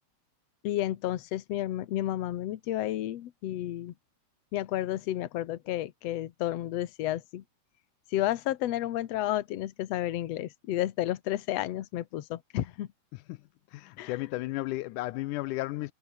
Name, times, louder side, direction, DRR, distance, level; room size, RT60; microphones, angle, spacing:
voice 1, 0.6-3.9 4.5-7.4 8.1-12.9 14.0-14.2, left 13 dB, 65° left, 2.1 m, -31 dB
voice 2, 13.7-15.9, left 19 dB, 85° left, 2.1 m, -33 dB
omnidirectional pair, 3.5 m